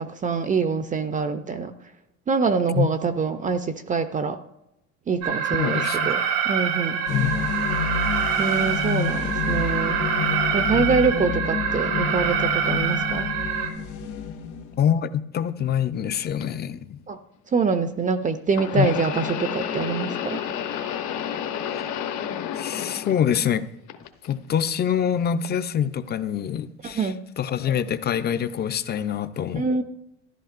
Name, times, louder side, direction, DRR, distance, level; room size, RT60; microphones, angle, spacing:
voice 1, 0.2-1.7 2.3-4.4 5.1-7.0 8.4-10.0 10.5-13.3 17.1-17.2 17.5-20.4 26.8-27.2 29.5-29.8, right 5 dB, 25° right, 0.5 m, -25 dB
Alarm, 5.2-13.7, right 7 dB, 85° right, 2.1 m, -25 dB
voice 2, 5.6-6.1 7.1-7.3 14.8-17.0 18.7-18.9 21.7-21.9 22.6-23.7 24.3-29.8, left 9 dB, 30° left, 0.5 m, -25 dB
sound 1, 7.1-15.0, left 7 dB, 80° left, 1.9 m, -29 dB
sound 2, 16.4-16.5 18.5-23.6 23.9-24.7 25.4-25.6 26.6-26.7, left 9 dB, 55° left, 1.0 m, -31 dB
13.5 x 11.0 x 2.5 m
cardioid pair, 120°, 33 cm